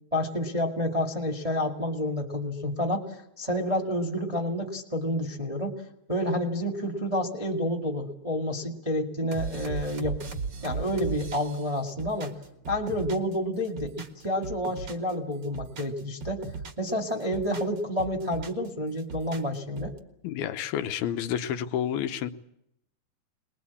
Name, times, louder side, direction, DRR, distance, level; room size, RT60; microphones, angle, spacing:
voice 1, 0.1-3.0 3.4-5.7 6.1-10.2 10.6-12.3 12.7-13.9 14.2-16.5 16.8-19.9, left 1 dB, 15° right, 2 dB, 1.4 m, -29 dB
sound 1, 9.3-13.4 13.6-15.1 15.4-16.9 17.2-18.7 19.0-20.0, right 4 dB, 45° right, 1.5 m, -37 dB
voice 2, 20.2-22.3, left 10 dB, 80° left, 8 dB, 2.8 m, -30 dB
22.5 x 21.0 x 8.5 m, 0.79 s
omnidirectional pair, 4.3 m